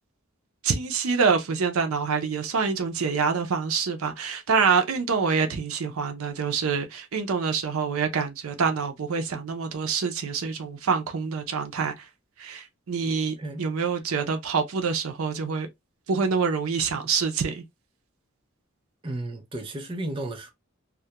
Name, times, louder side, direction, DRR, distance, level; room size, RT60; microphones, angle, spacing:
voice 1, 0.6-12.1 12.4-15.7 16.1-17.6, right 5 dB, 80° right, 0.5 m, -26 dB
voice 2, 19.0-20.5, right 1 dB, 25° right, 0.5 m, -33 dB
2.3 x 2.1 x 2.8 m
head